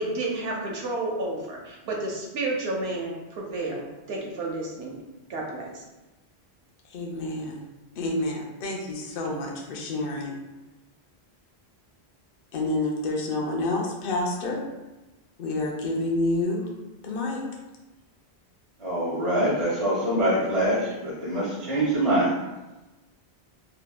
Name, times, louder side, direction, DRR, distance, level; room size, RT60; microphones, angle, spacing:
voice 1, 0.0-5.0 5.3-5.9, right 2 dB, 75° right, -1 dB, 0.8 m, -31 dB
voice 2, 6.9-7.6 8.0-10.3 12.5-14.6 15.4-16.7 17.0-17.4, left 2 dB, 65° left, -1 dB, 0.7 m, -28 dB
voice 3, 18.8-22.4, right 1 dB, 40° right, -7 dB, 0.6 m, -24 dB
2.7 x 2.2 x 2.2 m, 1.1 s
omnidirectional pair, 1.1 m